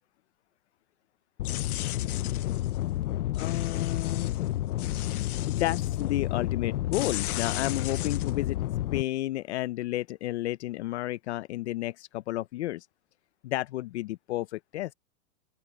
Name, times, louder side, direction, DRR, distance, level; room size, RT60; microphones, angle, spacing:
sound 1, 1.4-9.0, left 14 dB, 80° left, 0.8 m, -30 dB
voice 1, 3.3-4.3 5.5-8.6 8.9-12.9 13.4-14.9, left 16 dB, 50° left, 0.6 m, -31 dB
open air
supercardioid pair, 160°, 44 cm